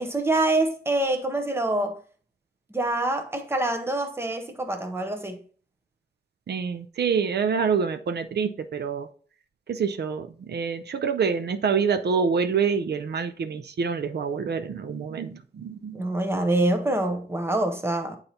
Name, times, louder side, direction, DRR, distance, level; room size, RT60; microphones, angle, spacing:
voice 1, 0.0-2.0 2.7-5.4 15.9-18.2, right 2 dB, 15° right, 0.8 m, -25 dB
voice 2, 6.5-9.1 9.7-16.1, right 6 dB, 75° right, 0.5 m, -26 dB
8.8 x 4.0 x 2.8 m
wide cardioid pair, 175°, 17 cm